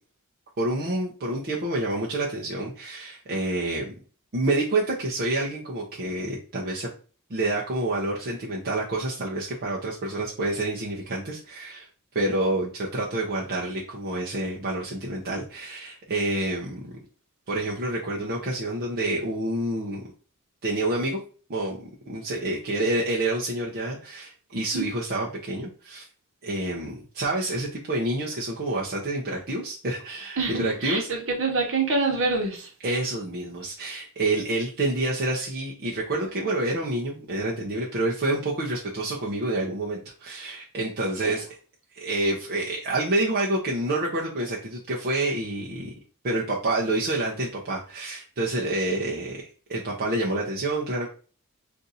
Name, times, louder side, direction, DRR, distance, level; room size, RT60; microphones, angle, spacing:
voice 1, 0.6-3.9 4.3-6.9 7.3-11.9 12.1-16.8 17.5-20.0 20.6-21.2 21.5-26.1 26.4-31.1 32.8-41.5 41.9-45.9 46.2-51.1, right 2 dB, 45° right, 0.6 m, -28 dB
voice 2, 30.4-32.7 41.2-41.3, right 3 dB, 60° right, 1.0 m, -26 dB
2.6 x 2.5 x 4.0 m
head